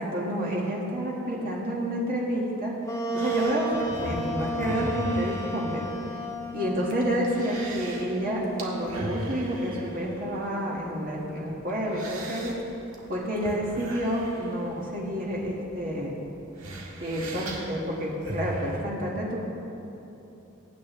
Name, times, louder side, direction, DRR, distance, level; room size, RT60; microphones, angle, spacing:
voice 1, 0.0-2.8 3.1-5.8 6.1-6.2 6.5-12.6 13.1-16.1 17.0-19.4, equal, 45° right, -4 dB, 1.7 m, -29 dB
Wind instrument woodwind instrument, 2.8-10.3, right 1 dB, 15° left, 0.8 m, -34 dB
sound 1, 3.1-18.8, right 1 dB, 70° right, 1.7 m, -39 dB
22.5 x 9.3 x 3.1 m, 3.0 s
head